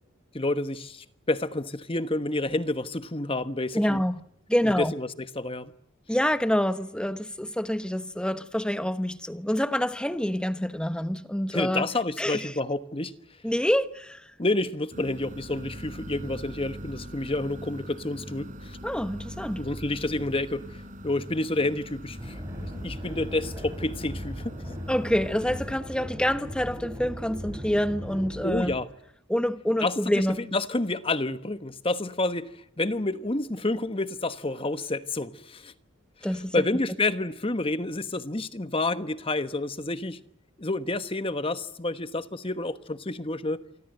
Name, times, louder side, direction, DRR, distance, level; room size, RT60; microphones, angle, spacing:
voice 1, 0.3-4.0 4.6-5.7 11.5-13.1 14.4-18.8 19.6-24.8 28.4-28.9 29.8-35.7 36.3-40.2 40.6-43.6, left 2 dB, 25° left, 1.2 m, -29 dB
voice 2, 3.7-4.2 4.5-4.9 6.1-11.8 12.2-12.5 13.4-14.2 18.8-19.6 24.9-28.7 29.3-30.4 36.2-36.5, equal, 5° left, 1.0 m, -27 dB
sound 1, 14.9-25.7, equal, 35° right, 4.0 m, -42 dB
sound 2, 22.2-28.8, equal, 15° right, 5.1 m, -38 dB
27.5 x 25.0 x 7.8 m
head